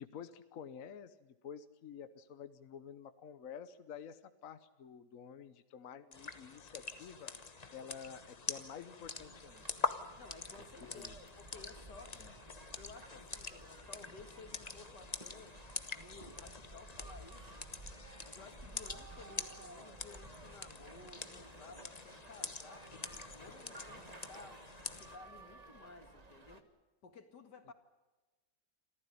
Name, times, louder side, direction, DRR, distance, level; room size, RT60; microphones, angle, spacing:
voice 1, 0.0-7.3 7.7-9.6 10.6-11.1 12.2-12.4, left 7 dB, 55° left, 11 dB, 1.3 m, -50 dB
sound 1, 6.1-25.2, left 4 dB, 30° left, 1.1 m, -45 dB
sound 2, 9.0-26.6, right 2 dB, 25° right, 1.7 m, -55 dB
voice 2, 10.2-12.2 12.8-15.6 15.9-17.5 18.2-22.9 23.3-26.7 27.0-27.7, left 4 dB, 85° left, 8 dB, 2.6 m, -56 dB
27.0 x 14.5 x 9.8 m, 1.2 s
omnidirectional pair, 1.8 m